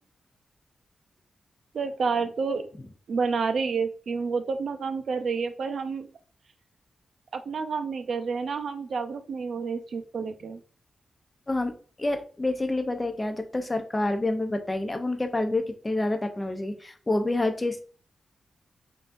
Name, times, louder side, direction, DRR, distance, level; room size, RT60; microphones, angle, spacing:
voice 1, 1.7-2.7 3.1-6.1 7.3-10.6, right 5 dB, 65° right, 7 dB, 0.5 m, -29 dB
voice 2, 11.5-17.8, left 2 dB, 20° left, 6 dB, 0.6 m, -28 dB
5.5 x 2.6 x 2.5 m, 0.41 s
wide cardioid pair, 115°, 0 cm